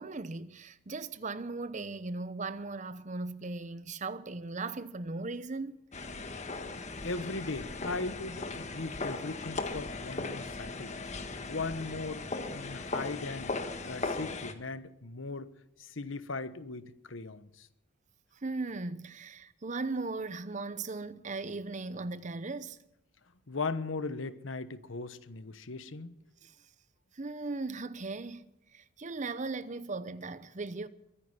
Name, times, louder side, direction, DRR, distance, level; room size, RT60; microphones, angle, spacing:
voice 1, 0.0-5.8 18.4-22.8 26.4-26.5 27.2-30.9, right 3 dB, 40° right, 0.8 m, -38 dB
sound 1, 5.9-14.5, left 3 dB, 35° left, 1.5 m, -38 dB
voice 2, 7.0-11.1 11.5-13.5 13.8-15.5 15.8-17.7 23.5-26.1, left 3 dB, 80° left, 1.1 m, -38 dB
23.0 x 10.0 x 5.8 m
head